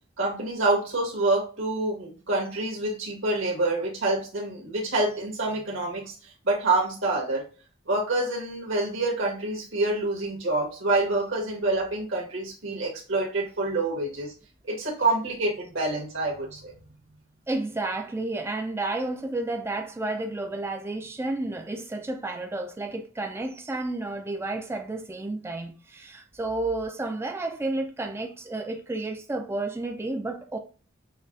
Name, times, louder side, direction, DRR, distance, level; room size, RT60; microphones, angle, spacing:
voice 1, 0.2-6.1 6.4-7.5 7.9-14.3 14.6-16.7, right 2 dB, 75° right, 1.6 m, -27 dB
voice 2, 17.5-30.6, right 2 dB, 15° right, 0.3 m, -31 dB
6.4 x 2.3 x 2.5 m
head